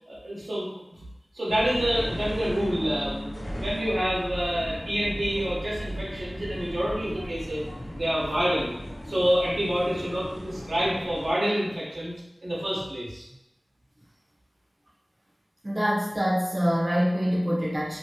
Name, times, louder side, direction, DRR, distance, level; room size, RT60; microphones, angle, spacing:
voice 1, 0.1-0.7 1.3-3.3 3.6-7.6 7.9-8.7 9.0-12.1 12.4-13.2, equal, 85° right, -7 dB, 1.0 m, -27 dB
sound 1, 1.5-11.3, equal, 60° left, 1.0 m, -36 dB
voice 2, 15.6-18.0, equal, 35° right, -6 dB, 0.9 m, -25 dB
2.9 x 2.7 x 2.8 m, 0.86 s
wide cardioid pair, 55°, 0 cm